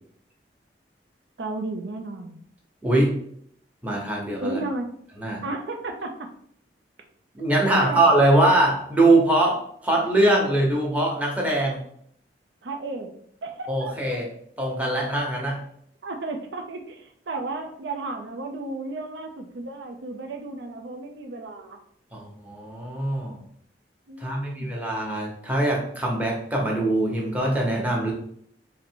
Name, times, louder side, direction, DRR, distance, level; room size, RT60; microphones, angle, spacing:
voice 1, 1.4-2.4 4.4-4.9 5.4-6.1 7.7-8.0 12.6-13.1 13.4-14.2 16.0-21.8 24.1-24.7, right 2 dB, 85° right, 4 dB, 0.5 m, -33 dB
voice 2, 3.8-4.6 5.2-5.4 7.3-11.8 13.7-14.3 14.6-15.6 22.1-23.4 24.2-28.1, right 1 dB, 10° right, -3 dB, 0.8 m, -22 dB
3.9 x 2.1 x 4.4 m, 0.66 s
head